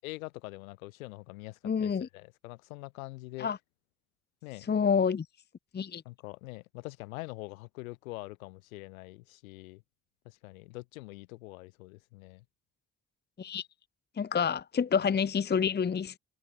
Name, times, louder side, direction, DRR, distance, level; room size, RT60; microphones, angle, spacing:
voice 1, 0.0-3.5 4.4-4.7 6.0-9.8 10.2-12.4, left 22 dB, 75° left, 7.7 m, -44 dB
voice 2, 1.6-2.1 3.4-3.6 4.7-5.3 5.7-6.0 13.4-13.7 14.2-16.2, left 6 dB, 25° left, 0.9 m, -28 dB
figure-of-eight pair, 40°, 42 cm